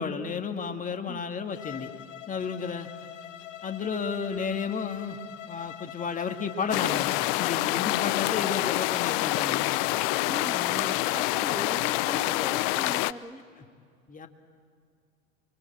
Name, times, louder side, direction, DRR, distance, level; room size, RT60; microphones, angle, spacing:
voice 1, 0.0-1.9 2.3-2.9 3.6-5.2 5.5-9.6 14.1-14.3, left 5 dB, 20° left, 6 dB, 2.0 m, -32 dB
Bowed string instrument, 1.5-11.5, left 11 dB, 65° left, 1.3 m, -44 dB
sound 1, 6.7-13.1, left 19 dB, 45° left, 0.7 m, -27 dB
voice 2, 10.2-13.4, right 2 dB, 5° right, 6 dB, 1.1 m, -40 dB
28.0 x 23.5 x 9.0 m, 2.3 s
hypercardioid pair, 95°, 41 cm